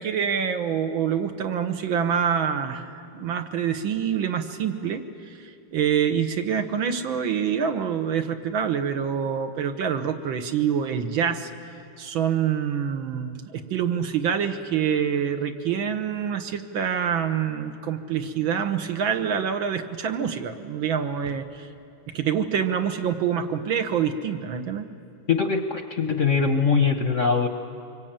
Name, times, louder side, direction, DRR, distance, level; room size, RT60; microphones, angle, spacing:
voice 1, 0.0-11.5 12.0-21.7 22.1-24.9, right 8 dB, 65° right, 7 dB, 1.9 m, -26 dB
voice 2, 25.3-27.5, left 5 dB, 50° left, 6 dB, 1.0 m, -22 dB
25.0 x 23.0 x 8.9 m, 2.5 s
omnidirectional pair, 2.4 m